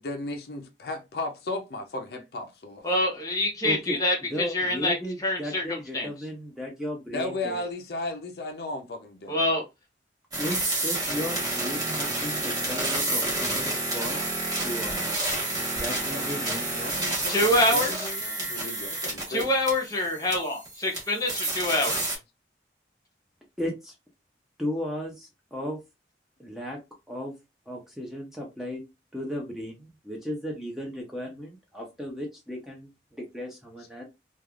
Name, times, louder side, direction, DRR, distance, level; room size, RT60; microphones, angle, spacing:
voice 1, 0.0-2.9 7.1-9.4 15.8-17.5 17.7-19.5, left 2 dB, 60° left, 0.5 m, -35 dB
voice 2, 2.8-4.9 5.2-6.1 9.3-9.6 17.3-18.1 19.3-22.0, left 1 dB, 20° left, 0.9 m, -26 dB
voice 3, 3.6-7.7 10.4-14.2 14.6-15.1 15.8-17.0 23.6-23.9 24.6-25.8 26.4-26.8 27.1-27.3 27.7-28.8 29.1-34.0, equal, ahead, 0.5 m, -35 dB
sound 1, 10.3-22.2, right 2 dB, 20° right, 1.1 m, -29 dB
3.2 x 2.3 x 2.3 m
head